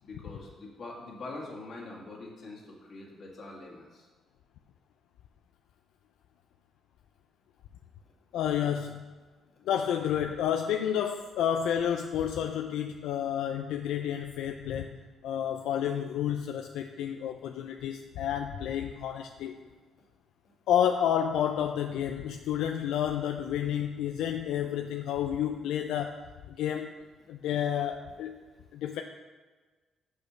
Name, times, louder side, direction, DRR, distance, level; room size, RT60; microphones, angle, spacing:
voice 1, 0.0-4.0, left 2 dB, 55° left, -1 dB, 1.7 m, -44 dB
voice 2, 8.3-9.1 9.7-19.6 20.7-26.2 26.5-26.9 27.3-28.3 28.7-29.0, left 9 dB, 85° left, 4 dB, 0.3 m, -30 dB
6.4 x 5.2 x 5.8 m, 1.3 s
cardioid pair, 90°, 0 cm